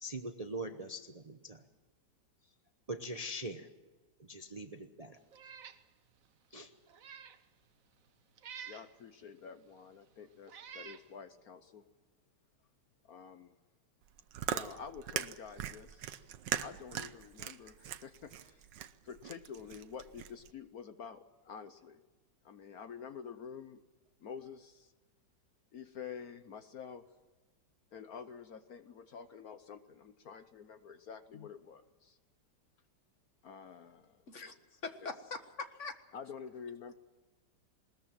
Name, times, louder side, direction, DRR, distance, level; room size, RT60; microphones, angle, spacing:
voice 1, 0.0-1.6 2.9-3.7 4.3-5.2 6.5-6.7, right 1 dB, 30° right, 0.7 m, -42 dB
Meow, 5.3-5.8 6.2-6.3 6.9-7.4 8.4-8.9 9.8-9.9 10.5-11.0, right 7 dB, 55° right, 1.3 m, -49 dB
voice 2, 8.7-11.9 13.0-13.5 14.5-16.3 16.6-18.7 19.0-22.0 22.4-23.8 24.2-24.9 25.7-27.0 27.9-32.2 33.4-34.2 36.1-36.9, left 6 dB, 60° left, 1.3 m, -48 dB
Chewing mastication, 14.0-20.5, right 10 dB, 85° right, 1.5 m, -40 dB
voice 3, 34.8-35.9, left 4 dB, 45° left, 1.8 m, -42 dB
20.5 x 20.0 x 7.5 m
omnidirectional pair, 1.9 m